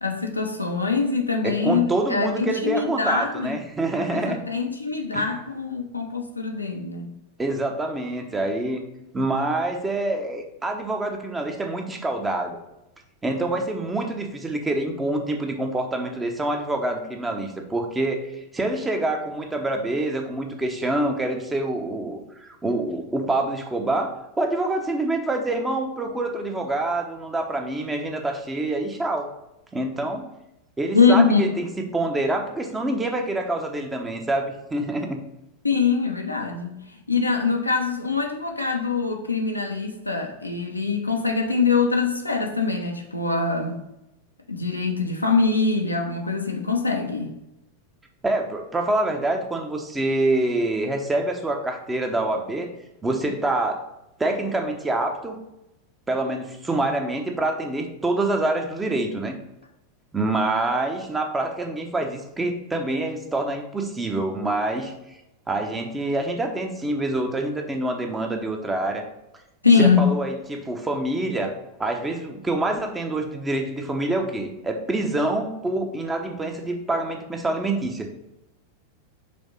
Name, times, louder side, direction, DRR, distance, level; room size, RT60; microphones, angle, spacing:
voice 1, 0.0-3.6 4.0-7.1 30.9-31.5 35.6-36.8 37.1-43.8 44.5-47.3 69.6-70.1, left 4 dB, 85° left, 2 dB, 0.8 m, -23 dB
voice 2, 1.4-4.4 5.1-5.3 7.4-8.8 9.1-12.6 13.2-24.1 24.4-29.3 29.7-30.3 30.8-35.2 48.2-52.7 53.0-53.8 54.2-55.4 56.1-59.4 60.1-64.9 65.5-69.1 69.8-71.5 71.8-78.1, right 2 dB, 10° right, 3 dB, 0.9 m, -26 dB
5.2 x 3.6 x 5.4 m, 0.88 s
figure-of-eight pair, 90°, 0 cm